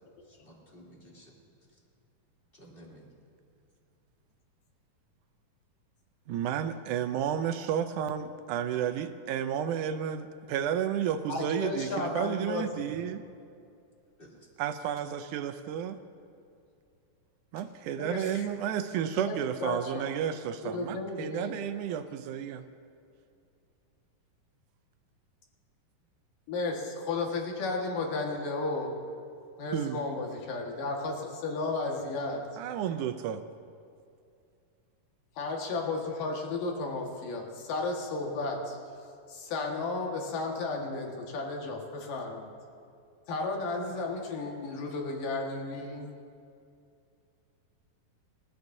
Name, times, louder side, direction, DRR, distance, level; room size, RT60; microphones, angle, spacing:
voice 1, 0.3-1.3 1.7-1.8 2.5-3.1 14.2-14.5, equal, 15° left, -5 dB, 2.9 m, -53 dB
voice 2, 6.3-13.2 14.6-16.0 17.5-22.6 29.7-30.0 32.6-33.4, right 9 dB, 80° right, 9 dB, 1.9 m, -32 dB
voice 3, 11.3-12.9 18.0-18.5 19.1-20.1 20.7-21.5 26.5-29.0 29.6-32.4 35.4-38.8 39.3-42.5 43.3-46.1, left 3 dB, 70° left, 1 dB, 3.2 m, -33 dB
27.0 x 13.0 x 2.7 m, 2.5 s
omnidirectional pair, 4.0 m